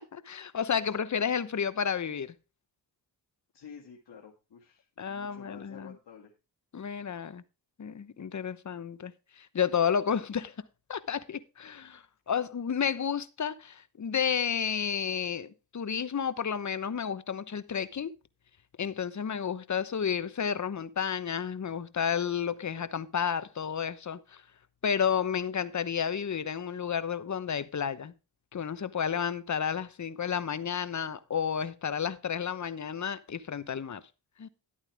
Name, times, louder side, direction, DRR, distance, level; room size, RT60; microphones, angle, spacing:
voice 1, 0.0-2.3 5.0-5.9 6.7-7.4 7.8-10.5 10.9-18.1 18.8-24.4 24.8-28.1 28.5-34.0 34.4-34.5, left 7 dB, 45° left, 1.0 m, -31 dB
voice 2, 3.5-6.3, left 6 dB, 65° left, 1.9 m, -50 dB
11.0 x 8.8 x 3.5 m
cardioid pair, 50°, 42 cm